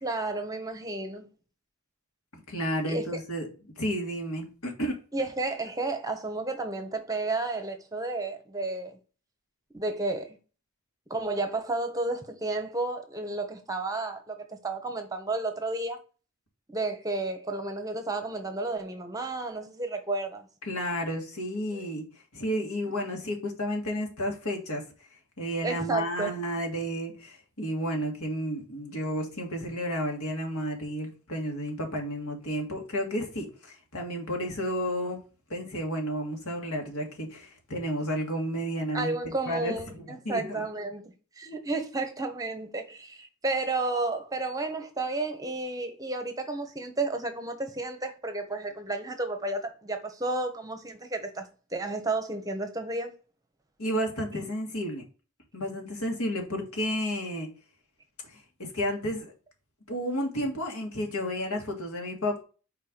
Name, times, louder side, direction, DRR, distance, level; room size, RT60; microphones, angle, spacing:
voice 1, 0.0-1.3 2.8-3.1 5.1-9.0 9.7-10.4 11.1-16.0 16.7-20.5 21.7-21.8 25.6-26.3 38.9-53.1, right 2 dB, 15° right, 0.8 m, -32 dB
voice 2, 2.5-3.5 3.8-5.0 20.7-22.0 22.3-24.8 25.4-35.2 35.5-40.6 53.8-55.0 55.5-57.5 58.3-59.3 59.9-62.4, equal, 80° left, 1.8 m, -32 dB
4.5 x 4.3 x 5.0 m
head